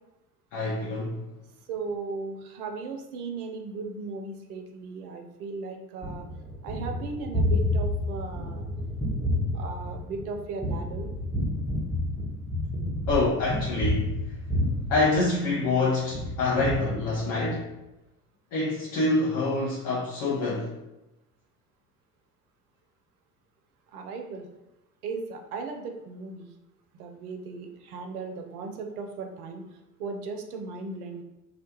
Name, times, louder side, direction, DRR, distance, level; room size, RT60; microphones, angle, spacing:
voice 1, 0.5-1.2 13.1-14.1 14.9-17.7 18.5-20.7, left 2 dB, 40° left, -6 dB, 0.7 m, -26 dB
voice 2, 1.7-6.2 6.6-8.6 9.5-11.1 23.9-24.5 25.0-26.5 27.0-29.6 30.0-31.2, right 4 dB, 70° right, 4 dB, 0.6 m, -36 dB
Gunshot gunfire, 6.0-15.7 16.1-17.5, left 1 dB, ahead, 0.6 m, -29 dB
2.4 x 2.2 x 2.9 m, 0.95 s
figure-of-eight pair, 70°, 47 cm